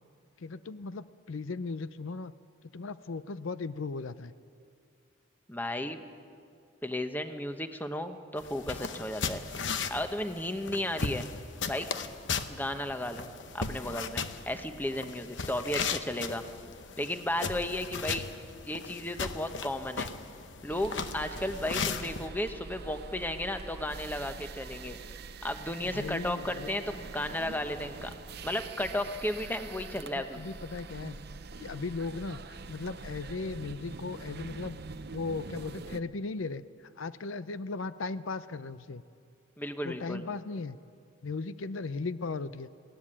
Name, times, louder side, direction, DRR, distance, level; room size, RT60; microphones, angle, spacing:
voice 1, 0.4-2.3 2.7-4.3 18.1-18.3 25.9-26.8 30.1-31.2 31.6-34.8 35.1-36.6 37.0-39.0 39.8-40.8 41.2-42.7, left 3 dB, 85° left, 14 dB, 0.6 m, -37 dB
voice 2, 5.5-6.0 6.8-9.4 9.9-11.3 11.7-11.9 12.5-13.3 13.5-16.4 17.0-18.2 18.6-20.1 20.6-25.0 25.4-28.1 28.4-30.5 39.6-40.2, left 1 dB, 10° left, 7 dB, 1.0 m, -34 dB
sound 1, 8.4-22.3, left 5 dB, 65° left, 1.0 m, -37 dB
sound 2, 20.7-36.0, right 4 dB, 55° right, 0.7 m, -44 dB
21.0 x 16.5 x 10.0 m, 2.4 s
head